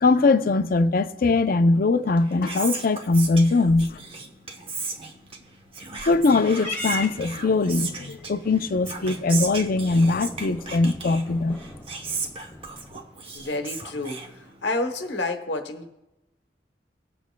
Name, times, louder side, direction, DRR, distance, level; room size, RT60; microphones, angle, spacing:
voice 1, 0.0-4.0 6.1-11.6, left 3 dB, 55° left, 0.5 m, -21 dB
Whispering, 2.0-14.9, right 4 dB, 30° right, 0.9 m, -36 dB
Purr / Meow, 6.6-13.1, equal, 10° left, 1.4 m, -39 dB
voice 2, 13.3-15.9, left 2 dB, 75° left, 1.0 m, -30 dB
20.5 x 7.3 x 2.2 m
head